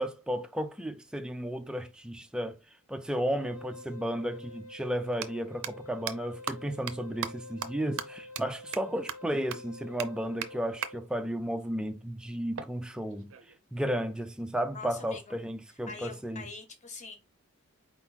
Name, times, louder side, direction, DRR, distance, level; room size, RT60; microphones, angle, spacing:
voice 1, 0.0-2.6 2.9-13.3 13.7-16.4, equal, 5° right, 0.3 m, -33 dB
Wind instrument woodwind instrument, 3.2-11.1, left 2 dB, 70° left, 0.7 m, -48 dB
sound 1, 5.1-5.3 5.6-5.7 6.1-6.2 6.5-6.6 6.9-7.0 7.2-7.3 7.6-7.7 8.0-8.1 8.4-8.5 8.7-8.8 9.1-9.2 9.5-9.6 10.0-10.1 10.4-10.5 10.8-10.9 12.6-13.6, right 8 dB, 65° right, 0.5 m, -36 dB
voice 2, 14.7-15.4 15.9-17.2, left 4 dB, 35° left, 1.0 m, -44 dB
4.4 x 2.8 x 4.0 m
head